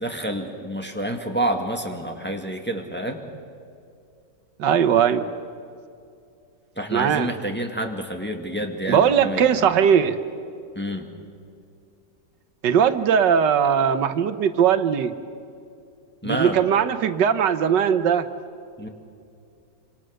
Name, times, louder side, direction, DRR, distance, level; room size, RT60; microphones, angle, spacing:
voice 1, 0.0-3.2 6.8-9.7 10.7-11.1 16.2-16.6 18.8-18.9, right 1 dB, 5° left, 2 dB, 1.7 m, -28 dB
voice 2, 4.6-5.3 6.9-7.3 8.9-10.2 12.6-15.1 16.2-18.3, right 8 dB, 85° right, 11 dB, 1.6 m, -19 dB
26.0 x 26.0 x 6.5 m, 2.4 s
omnidirectional pair, 1.9 m